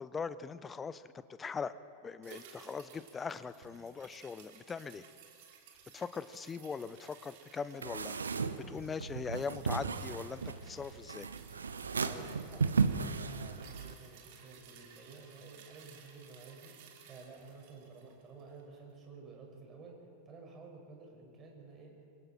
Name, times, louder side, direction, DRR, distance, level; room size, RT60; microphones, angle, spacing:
voice 1, 0.0-1.7 2.0-5.0 5.9-8.4 8.7-11.3, left 5 dB, 15° left, 15 dB, 0.7 m, -41 dB
sound 1, 2.2-18.7 19.0-19.1, right 7 dB, 50° right, 2.9 m, -58 dB
sound 2, 7.8-13.9, right 5 dB, 75° right, 0.9 m, -35 dB
voice 2, 12.0-20.0 20.3-22.1, right 4 dB, 25° right, 0 dB, 5.8 m, -52 dB
27.5 x 22.0 x 4.5 m, 2.6 s
figure-of-eight pair, 90°, 0 cm